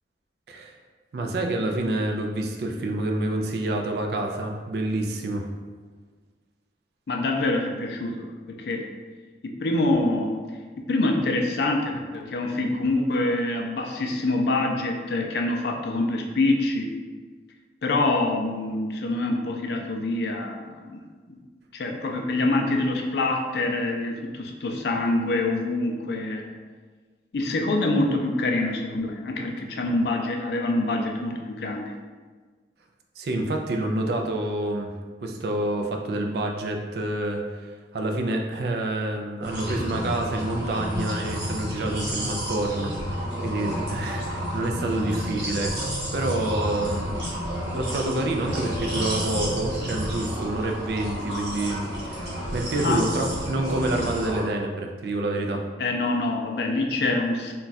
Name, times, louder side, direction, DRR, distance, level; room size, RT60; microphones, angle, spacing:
voice 1, 1.1-5.5 33.2-34.9 35.2-47.1 47.7-52.2 52.5-55.7, right 1 dB, 65° right, 2 dB, 0.4 m, -28 dB
voice 2, 7.1-8.9 9.4-10.4 10.8-16.9 17.8-21.0 21.3-21.4 21.7-26.6 27.3-31.9 52.8-53.1 55.8-57.5, left 2 dB, 65° left, 2 dB, 0.4 m, -25 dB
sound 1, 39.4-54.4, equal, 85° right, 1.1 m, -31 dB
2.4 x 2.2 x 3.9 m, 1.5 s
head